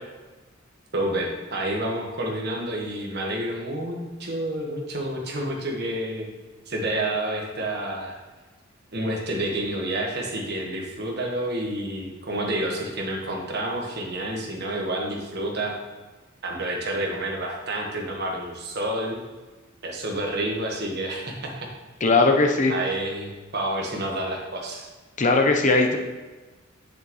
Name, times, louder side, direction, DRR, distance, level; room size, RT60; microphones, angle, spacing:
voice 1, 0.9-6.3 6.7-8.2 8.9-15.7 16.4-19.2 19.8-21.7 22.7-24.9, right 1 dB, 55° right, 0 dB, 1.4 m, -29 dB
voice 2, 22.0-22.7 25.2-26.0, left 3 dB, 40° left, 4 dB, 0.7 m, -19 dB
7.4 x 6.8 x 3.1 m, 1.2 s
head